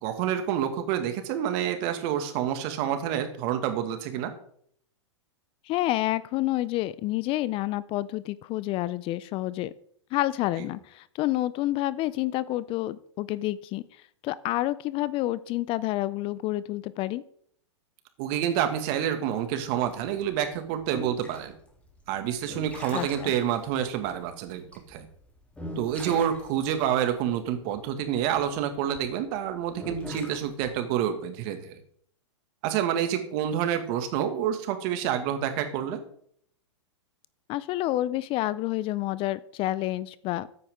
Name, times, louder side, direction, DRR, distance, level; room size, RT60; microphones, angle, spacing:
voice 1, 0.0-4.3 18.2-21.5 22.1-25.1 25.8-31.7 32.6-36.0, right 10 dB, 50° right, 7 dB, 2.0 m, -28 dB
voice 2, 5.7-9.7 10.1-13.8 14.2-17.2 22.9-23.3 37.5-40.5, left 16 dB, 35° left, 17 dB, 0.5 m, -29 dB
sound 1, 19.6-29.0 29.7-30.7, equal, 10° left, 3.3 m, -41 dB
13.5 x 9.4 x 3.7 m, 0.66 s
hypercardioid pair, 115°, 16 cm